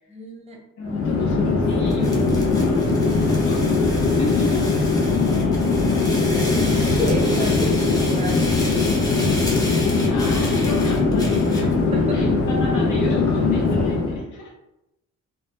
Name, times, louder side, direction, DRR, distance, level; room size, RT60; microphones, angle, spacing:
voice 1, 0.1-0.6 6.3-9.4 11.9-12.3, right 1 dB, 20° right, -1 dB, 0.7 m, -31 dB
voice 2, 0.8-3.8 4.1-4.6 10.0-11.7 12.1-14.5, left 3 dB, 75° left, -1 dB, 0.8 m, -33 dB
Chatter / Fixed-wing aircraft airplane, 0.8-14.2, left 3 dB, 50° left, 0.6 m, -20 dB
sound 1, 1.9-11.7, left 1 dB, 10° left, 0.7 m, -34 dB
2.1 x 2.1 x 2.9 m, 0.86 s
cardioid pair, 90°, 30 cm